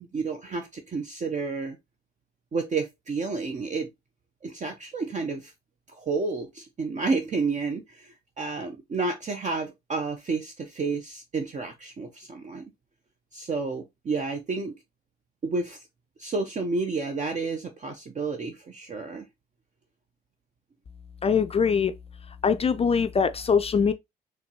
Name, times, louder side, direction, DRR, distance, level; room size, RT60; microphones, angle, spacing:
voice 1, 0.0-1.8 2.5-3.9 4.4-5.5 5.9-12.7 13.3-14.7 15.4-15.8 16.2-19.2, right 4 dB, 35° right, 0.7 m, -30 dB
voice 2, 21.2-21.9 22.4-23.9, left 6 dB, 30° left, 0.4 m, -22 dB
4.2 x 3.2 x 2.8 m
supercardioid pair, 65°, 20 cm